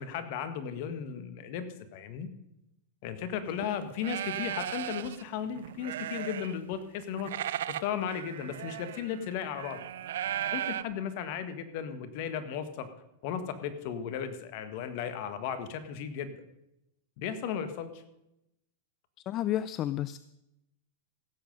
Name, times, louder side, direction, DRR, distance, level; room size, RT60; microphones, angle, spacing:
voice 1, 0.0-1.6 1.9-2.3 3.0-7.3 7.7-9.8 10.5-12.9 13.2-16.4 17.2-18.0, left 8 dB, 55° left, 10 dB, 1.6 m, -35 dB
sound 1, 3.5-3.7 4.0-5.2 5.6-6.7 7.0-10.8, right 11 dB, 75° right, 0.5 m, -36 dB
voice 2, 19.3-20.2, left 12 dB, 40° left, 16 dB, 0.4 m, -31 dB
16.5 x 7.7 x 5.3 m, 0.86 s
hypercardioid pair, 115°, 0 cm